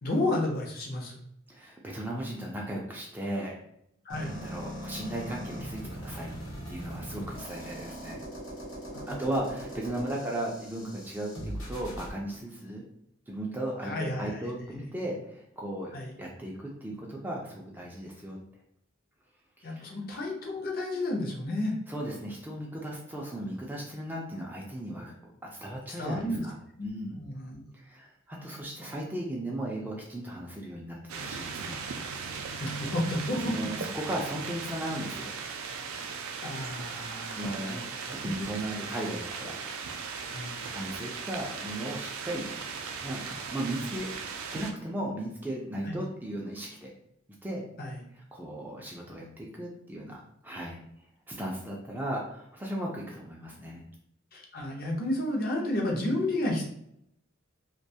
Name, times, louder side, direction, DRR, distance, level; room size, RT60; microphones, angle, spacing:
voice 1, 0.0-1.2 4.1-4.3 8.9-9.3 13.8-14.4 14.7-14.8 15.9-16.1 19.6-21.7 26.0-26.4 26.8-27.6 32.6-33.5 36.4-37.8 38.2-38.3 40.2-40.5 45.9-46.0 47.8-48.0 54.3-56.6, left 1 dB, 45° left, 0 dB, 0.6 m, -31 dB
voice 2, 1.5-3.6 4.2-6.3 6.7-8.2 9.1-12.8 13.3-18.4 19.6-19.9 21.9-25.1 25.5-26.6 26.8-27.2 27.7-31.8 33.4-35.3 37.4-37.9 38.2-39.6 40.6-42.5 43.0-44.1 44.5-46.9 47.4-47.6 48.2-50.8 51.3-53.8, right 1 dB, 10° right, -3 dB, 0.3 m, -36 dB
sound 1, 4.1-12.1, equal, 85° left, 0.9 m, -40 dB
sound 2, 31.1-44.7, right 5 dB, 85° right, 0.3 m, -38 dB
2.4 x 2.2 x 2.7 m, 0.75 s
head